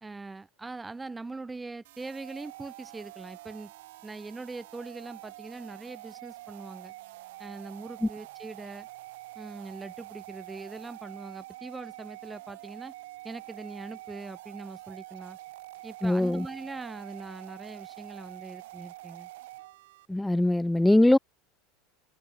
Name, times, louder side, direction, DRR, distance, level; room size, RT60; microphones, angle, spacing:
voice 1, 0.0-3.7 4.0-6.9 7.4-8.9 9.3-12.9 13.2-15.4 15.8-19.3, right 3 dB, 15° right, 1.7 m, -42 dB
sound 1, 1.8-20.1, right 18 dB, 75° right, 3.0 m, -46 dB
voice 2, 16.0-16.5 20.1-21.2, left 1 dB, 5° left, 0.5 m, -22 dB
supercardioid pair, 105°, 0 cm